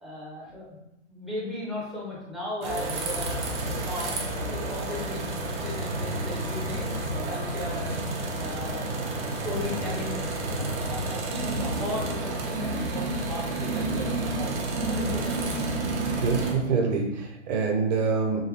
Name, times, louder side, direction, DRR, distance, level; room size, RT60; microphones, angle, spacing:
voice 1, 0.0-0.8 1.1-4.2 4.5-5.4 5.6-7.9 8.4-9.1 9.4-10.3 10.5-14.6 14.8-15.4, left 1 dB, ahead, -6 dB, 0.4 m, -36 dB
sound 1, 2.6-16.5, right 2 dB, 70° right, 1.1 m, -30 dB
voice 2, 16.2-18.4, right 4 dB, 35° right, 1 dB, 0.7 m, -25 dB
3.9 x 3.2 x 2.9 m, 0.87 s
hypercardioid pair, 145°, 36 cm